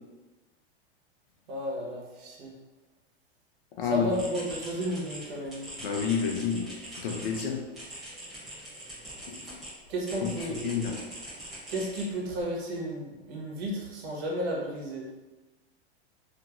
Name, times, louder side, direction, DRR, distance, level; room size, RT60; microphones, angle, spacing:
voice 1, 1.5-2.6 3.8-5.7 9.9-10.7 11.7-15.1, equal, 75° right, -3 dB, 0.9 m, -33 dB
voice 2, 3.8-4.1 5.8-6.7 7.0-7.7 9.3-9.5 10.2-10.3 10.6-11.0, left 7 dB, 60° left, 3 dB, 0.5 m, -29 dB
sound 1, 4.1-9.7 10.0-12.4, right 1 dB, ahead, 0.8 m, -43 dB
2.8 x 2.7 x 2.3 m, 1.1 s
supercardioid pair, 180°, 31 cm